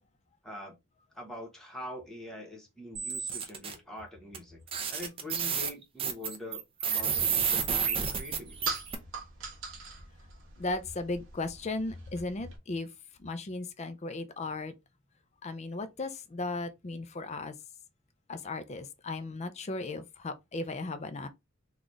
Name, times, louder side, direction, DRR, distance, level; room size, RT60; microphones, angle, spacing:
voice 1, 0.4-0.7 1.2-4.6 4.9-8.7, left 1 dB, ahead, 1.0 m, -44 dB
sound 1, 3.0-3.7 4.3-4.4 4.7-9.0, right 7 dB, 25° right, 0.6 m, -30 dB
sound 2, 7.1-12.6, right 4 dB, 65° right, 1.0 m, -43 dB
voice 2, 10.6-12.9 13.2-14.7 15.4-17.5 18.3-21.3, left 2 dB, 30° left, 0.4 m, -36 dB
3.9 x 2.4 x 3.1 m
head